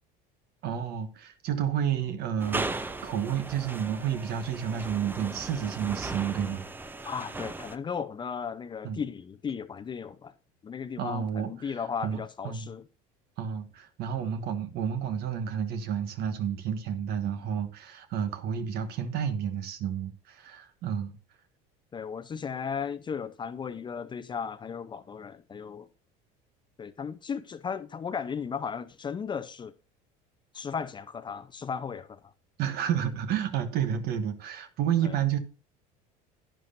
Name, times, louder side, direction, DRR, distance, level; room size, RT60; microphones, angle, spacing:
voice 1, 0.6-6.6 8.8-9.0 11.0-12.7 13.4-21.2 32.6-35.4, right 8 dB, 60° right, 1.3 m, -31 dB
sound 1, 2.4-7.8, right 2 dB, 10° right, 0.7 m, -37 dB
voice 2, 7.0-10.3 10.6-12.8 21.9-25.9 26.8-29.7 30.5-32.3 35.0-35.1, left 6 dB, 25° left, 0.7 m, -35 dB
10.5 x 10.5 x 2.6 m
cardioid pair, 120°, 18 cm